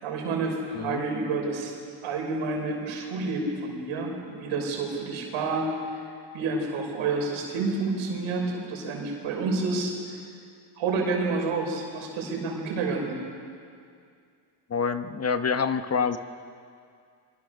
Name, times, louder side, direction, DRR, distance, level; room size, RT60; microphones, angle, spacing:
voice 1, 0.0-1.8 2.0-6.0 6.3-10.0 10.8-13.2, right 3 dB, 85° right, 1 dB, 6.0 m, -29 dB
voice 2, 14.7-16.2, left 6 dB, 30° left, 10 dB, 1.1 m, -26 dB
26.0 x 24.0 x 6.7 m, 2.3 s
cardioid pair, 100°, 47 cm